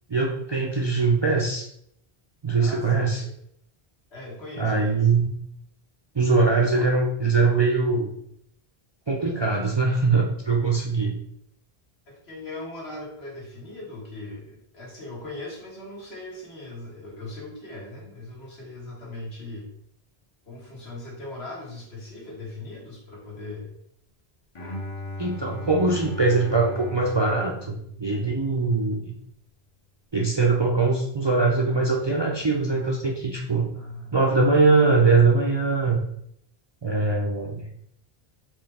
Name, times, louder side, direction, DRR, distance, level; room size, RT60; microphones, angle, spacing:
voice 1, 0.1-1.6 2.4-3.2 4.6-5.3 6.2-8.2 9.1-11.2 25.2-29.1 30.1-33.7 34.1-36.0 36.8-37.8, right 3 dB, 40° right, -1 dB, 0.4 m, -22 dB
voice 2, 2.6-3.3 4.1-5.1 12.1-19.7 20.5-23.7 33.7-34.3, left 2 dB, 80° left, -4 dB, 1.7 m, -39 dB
Bowed string instrument, 24.5-28.7, left 2 dB, 40° left, 0.6 m, -37 dB
4.4 x 3.1 x 3.4 m, 0.71 s
omnidirectional pair, 1.1 m